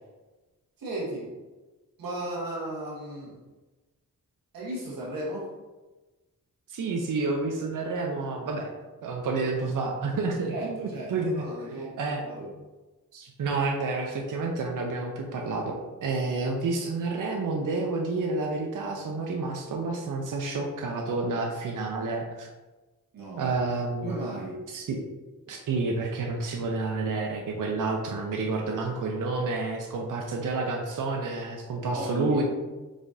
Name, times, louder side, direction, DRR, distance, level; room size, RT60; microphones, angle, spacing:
voice 1, 0.8-1.3 2.0-3.4 4.5-5.5 10.5-12.5 23.1-23.6 24.0-24.6 31.9-32.4, right 1 dB, 90° right, -5 dB, 1.4 m, -35 dB
voice 2, 6.7-8.7 9.0-11.4 12.0-12.2 13.1-15.7 16.0-22.5 23.4-24.1 24.7-25.0 25.5-32.4, right 3 dB, 70° right, 1 dB, 0.7 m, -29 dB
5.0 x 3.7 x 2.6 m, 1.2 s
cardioid pair, 90°, 33 cm